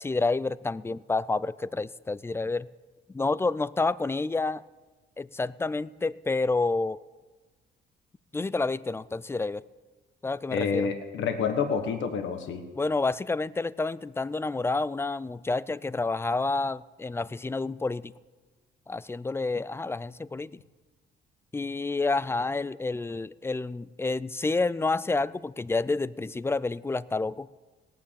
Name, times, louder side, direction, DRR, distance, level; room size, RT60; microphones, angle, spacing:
voice 1, 0.0-2.7 3.1-4.6 5.2-7.0 8.3-9.6 10.2-10.9 12.8-18.1 18.9-20.6 21.5-27.5, left 3 dB, 10° left, 19 dB, 0.4 m, -29 dB
voice 2, 10.5-12.6, left 6 dB, 70° left, 7 dB, 1.3 m, -28 dB
18.0 x 9.1 x 6.9 m, 1.3 s
cardioid pair, 90°, 20 cm